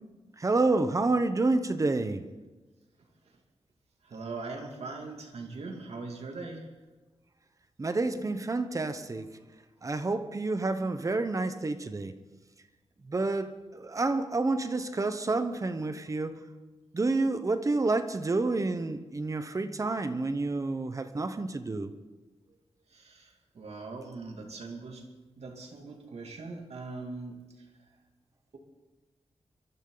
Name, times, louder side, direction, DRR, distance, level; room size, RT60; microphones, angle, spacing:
voice 1, 0.4-2.2 7.8-9.3 9.8-12.2 13.0-16.4 16.9-21.9, right 3 dB, 30° right, 1.0 m, -29 dB
voice 2, 4.0-6.7 22.9-25.1 25.4-27.6, right 3 dB, 70° right, 2.7 m, -41 dB
23.5 x 13.0 x 4.0 m
wide cardioid pair, 150°, 11 cm